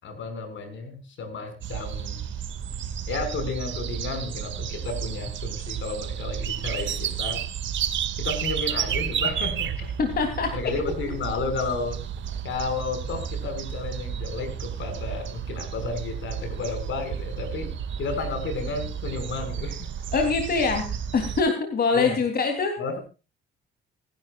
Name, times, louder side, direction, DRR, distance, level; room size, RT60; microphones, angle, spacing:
voice 1, 0.0-2.2 3.1-7.5 8.2-9.9 10.5-12.0 12.4-17.7 18.0-19.9 21.9-22.2 22.8-23.0, left 4 dB, 70° left, 7 dB, 5.8 m, -32 dB
sound 1, 1.6-21.4, right 8 dB, 70° right, 2.1 m, -32 dB
voice 2, 10.0-10.5 20.1-20.9 21.1-22.7, left 4 dB, 50° left, 4 dB, 3.3 m, -23 dB
25.5 x 11.5 x 2.5 m, 0.32 s
cardioid pair, 90°, 20 cm